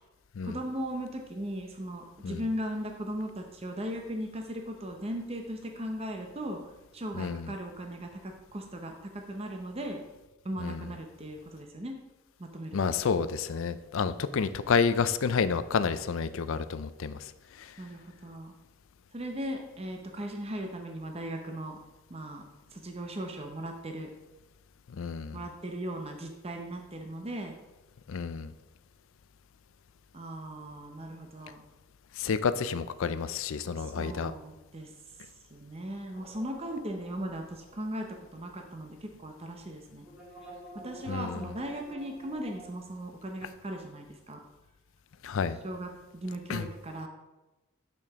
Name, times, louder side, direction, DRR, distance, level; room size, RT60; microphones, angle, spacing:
voice 1, 0.4-6.6 6.9-10.0 10.4-11.9 12.4-12.9 17.8-18.5 19.1-21.8 22.1-24.1 25.3-27.5 30.1-31.6 33.8-34.9 35.5-40.1 40.7-44.4 45.6-47.1, right 1 dB, 25° right, 3 dB, 0.7 m, -38 dB
voice 2, 7.2-7.5 10.6-10.9 12.7-17.3 17.6-17.7 25.0-25.4 28.1-28.5 32.2-34.3 41.1-41.4 45.2-45.6 46.5-46.7, left 5 dB, 65° left, 13 dB, 0.4 m, -30 dB
sound 1, 36.2-38.7 39.0-39.1 40.0-42.7, equal, 5° right, 2.0 m, -49 dB
8.3 x 6.9 x 3.6 m, 1.0 s
head